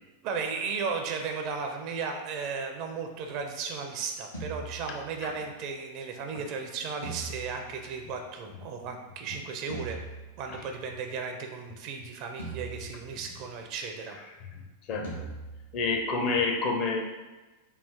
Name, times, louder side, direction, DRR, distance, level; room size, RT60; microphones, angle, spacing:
voice 1, 0.2-10.0 10.4-14.2, right 5 dB, 40° right, 4 dB, 0.4 m, -35 dB
sound 1, 4.3-5.5 7.0-8.5 9.7-10.9 12.4-13.6 15.0-16.2, right 3 dB, 75° left, 1.1 m, -42 dB
voice 2, 14.9-15.3 15.7-17.0, left 4 dB, 40° left, 2 dB, 0.5 m, -28 dB
3.3 x 2.4 x 3.6 m, 1.2 s
figure-of-eight pair, 90°, 0 cm